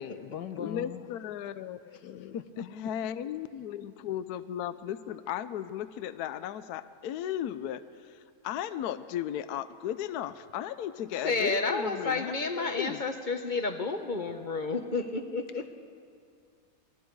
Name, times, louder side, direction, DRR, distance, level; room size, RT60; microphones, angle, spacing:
voice 1, 0.0-1.1 2.3-2.7, left 7 dB, 90° left, 11 dB, 1.6 m, -38 dB
voice 2, 0.6-7.8 8.4-13.0, left 10 dB, 70° left, 12 dB, 1.1 m, -36 dB
voice 3, 11.1-15.8, left 3 dB, 35° left, 7 dB, 0.9 m, -31 dB
28.0 x 22.0 x 4.7 m, 2.3 s
omnidirectional pair, 1.8 m